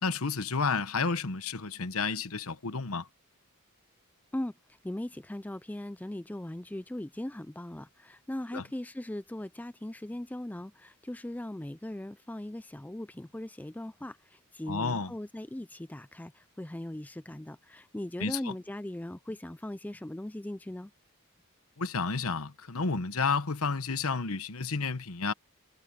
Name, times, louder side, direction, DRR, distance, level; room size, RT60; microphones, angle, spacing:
voice 1, 0.0-3.1 8.5-8.6 14.7-15.1 18.2-18.5 21.8-25.3, left 4 dB, 75° left, 1.1 m, -31 dB
voice 2, 4.8-20.9, left 1 dB, 5° left, 0.4 m, -39 dB
head